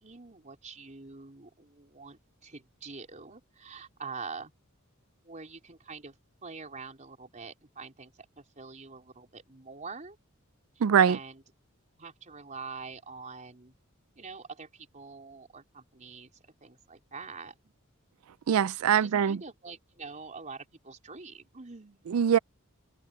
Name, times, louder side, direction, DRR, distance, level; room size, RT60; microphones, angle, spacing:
voice 1, 0.0-4.5 5.2-6.2 6.4-10.2 10.7-11.4 12.0-13.8 14.2-16.3 16.6-17.7 19.0-22.0, right 4 dB, 35° right, 4.2 m, -45 dB
voice 2, 10.8-11.2 18.5-19.4 22.1-22.4, right 8 dB, 90° right, 0.4 m, -22 dB
head